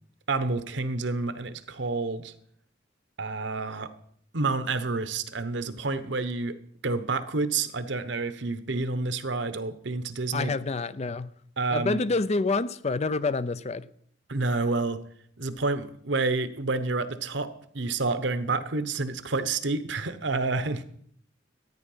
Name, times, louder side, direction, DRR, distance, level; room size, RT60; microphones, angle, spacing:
voice 1, 0.3-2.3 3.2-3.9 4.3-6.6 6.8-10.5 11.6-12.0 14.3-15.0 15.4-20.8, right 3 dB, 65° right, 1.0 m, -29 dB
voice 2, 10.3-11.3 11.7-13.9, left 3 dB, 35° left, 0.5 m, -27 dB
13.5 x 9.5 x 5.6 m
head